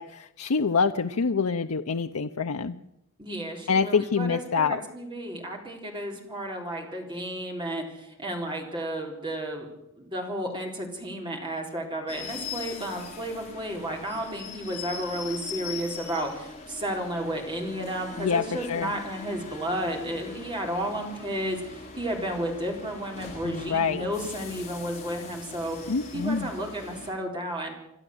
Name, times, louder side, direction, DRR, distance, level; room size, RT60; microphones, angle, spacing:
voice 1, 0.0-2.7 3.7-4.8 18.2-18.9 23.4-24.0 25.9-26.5, left 5 dB, 80° left, 7 dB, 0.6 m, -26 dB
voice 2, 3.2-9.7 9.9-27.7, right 1 dB, 20° right, 1 dB, 3.9 m, -32 dB
sound 1, 12.1-27.1, left 4 dB, 30° left, 4.5 m, -41 dB
27.5 x 12.0 x 7.9 m, 0.86 s
head